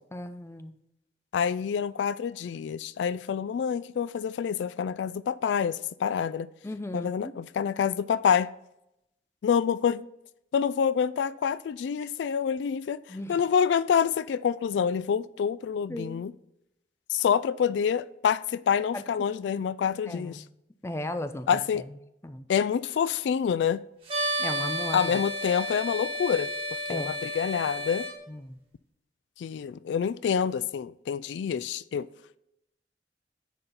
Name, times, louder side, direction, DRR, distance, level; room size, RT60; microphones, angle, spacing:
voice 1, 0.1-0.7 6.6-7.3 13.1-13.4 15.9-16.2 18.9-19.0 19.4-19.6 20.1-20.4 20.8-21.8 22.2-22.4 24.4-25.2 26.9-27.3 28.3-28.6, left 1 dB, 15° left, 0.5 m, -36 dB
voice 2, 1.3-6.5 6.9-8.5 9.4-10.1 10.5-16.3 17.1-20.4 21.5-21.8 22.5-23.8 24.9-26.5 26.9-28.1 29.4-32.1, left 7 dB, 85° left, 0.3 m, -27 dB
sound 1, 24.1-28.1, equal, 30° right, 1.7 m, -32 dB
9.9 x 4.4 x 4.0 m
head